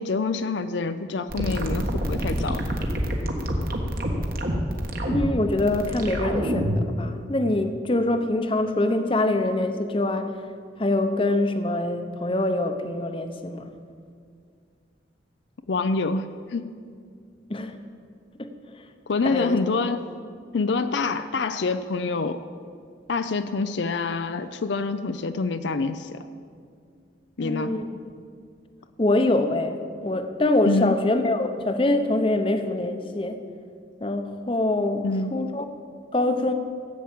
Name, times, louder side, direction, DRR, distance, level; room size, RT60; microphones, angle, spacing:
voice 1, 0.0-2.6 15.7-16.8 19.1-20.1 20.5-22.4 23.1-26.2 27.4-27.7 30.6-31.0 35.0-35.3, left 3 dB, 70° left, 10 dB, 0.5 m, -26 dB
sound 1, 1.3-6.9, equal, 50° right, 1.5 m, -27 dB
voice 2, 5.1-10.3 10.8-13.7 17.5-17.8 18.4-18.5 19.2-19.6 27.4-28.1 29.0-33.4 34.0-35.6 36.1-36.5, left 2 dB, 30° left, 8 dB, 0.8 m, -24 dB
15.0 x 8.4 x 7.6 m, 2.2 s
head